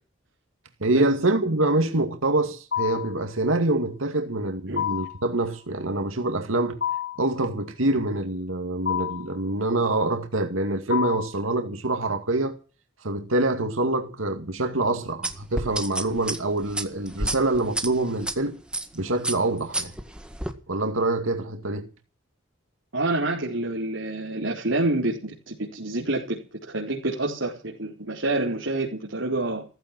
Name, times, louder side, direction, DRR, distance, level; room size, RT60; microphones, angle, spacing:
voice 1, 0.8-6.8 7.2-12.6 13.0-18.6 18.9-19.9 20.7-21.9, right 2 dB, 85° right, 2.2 m, -25 dB
sound 1, 2.7-3.2 4.8-5.2 6.8-7.3 8.8-9.3 10.9-11.4, left 10 dB, 60° left, 2.2 m, -28 dB
sound 2, 15.2-18.3 18.7-19.0 19.2-20.5, right 1 dB, 5° right, 1.8 m, -30 dB
voice 2, 22.9-29.6, right 2 dB, 70° right, 4.3 m, -27 dB
15.0 x 15.0 x 6.1 m
head